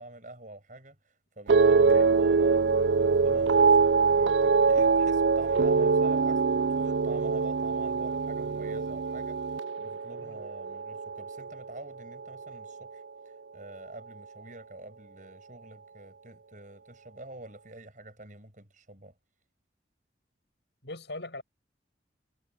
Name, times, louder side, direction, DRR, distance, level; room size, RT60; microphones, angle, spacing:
voice 1, 0.0-2.7 3.0-19.1, right 2 dB, 45° right, 6.9 m, -47 dB
sound 1, 1.5-11.9 12.1-12.7, right 4 dB, 80° right, 0.4 m, -24 dB
voice 2, 20.8-21.4, left 2 dB, 70° left, 7.7 m, -41 dB
head